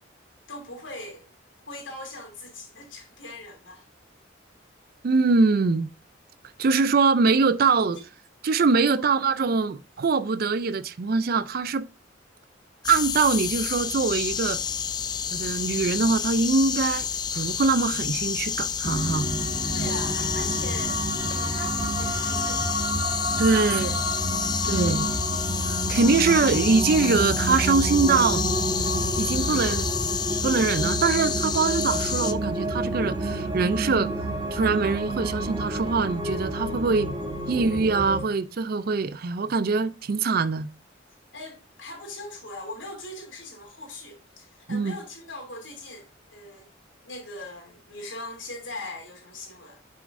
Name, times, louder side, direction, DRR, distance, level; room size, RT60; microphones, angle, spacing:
voice 1, 0.5-1.3 1.7-3.9 7.8-7.9 8.9-9.5 19.7-21.0 21.3-22.8 23.5-24.0 29.4-29.8 41.3-46.7 47.0-49.8, left 2 dB, 75° left, 2.8 m, -40 dB
voice 2, 5.0-5.9 6.6-8.0 8.4-11.9 12.9-14.6 15.3-17.1 17.3-19.3 23.4-23.9 24.6-25.1 25.7-28.4 29.2-29.9 30.4-34.1 34.5-37.1 37.5-40.7 44.7-44.9, right 4 dB, 50° right, 0.4 m, -23 dB
sound 1, 12.8-32.3, left 7 dB, 20° left, 0.3 m, -29 dB
sound 2, 18.8-38.2, right 1 dB, 25° right, 1.6 m, -29 dB
7.0 x 6.2 x 2.5 m
head